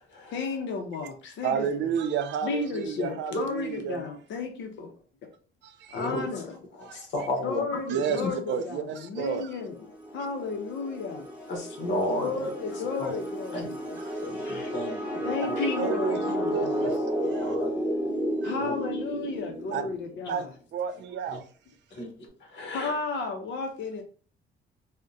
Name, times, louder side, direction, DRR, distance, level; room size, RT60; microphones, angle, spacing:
voice 1, 0.3-1.7 2.4-4.9 5.9-6.6 7.4-9.7 10.1-11.3 12.2-14.0 15.2-16.9 18.4-20.5 22.7-24.0, left 4 dB, 85° left, 0.6 m, -33 dB
voice 2, 1.4-4.0 5.6-6.1 6.8-7.3 7.9-9.6 14.0-14.2 15.8-16.2 16.5-16.9 17.2-17.6 18.4-18.5 19.7-19.8 20.3-20.5 20.7-21.5, right 7 dB, 70° right, 0.5 m, -31 dB
voice 3, 5.9-6.4 6.8-7.8 8.2-8.3 11.5-12.5 13.0-13.1 13.5-13.7 14.2-15.7 17.4-17.8 18.6-18.8 21.3-21.4 21.9-22.9, left 1 dB, 65° left, 1.0 m, -33 dB
sound 1, 9.7-20.2, equal, 10° right, 0.7 m, -32 dB
3.5 x 2.1 x 2.6 m
cardioid pair, 165°, 19 cm